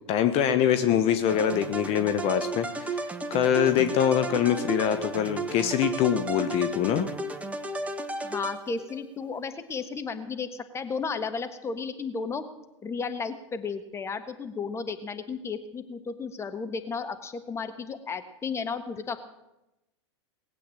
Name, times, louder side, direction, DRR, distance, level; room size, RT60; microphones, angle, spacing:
voice 1, 0.1-7.1, left 9 dB, 40° left, 9 dB, 1.1 m, -24 dB
sound 1, 1.3-9.0, right 2 dB, 10° right, 1.3 m, -34 dB
voice 2, 8.2-12.4 12.8-19.2, left 5 dB, 15° left, 9 dB, 1.5 m, -33 dB
19.0 x 8.4 x 8.5 m, 0.92 s
hypercardioid pair, 110°, 15 cm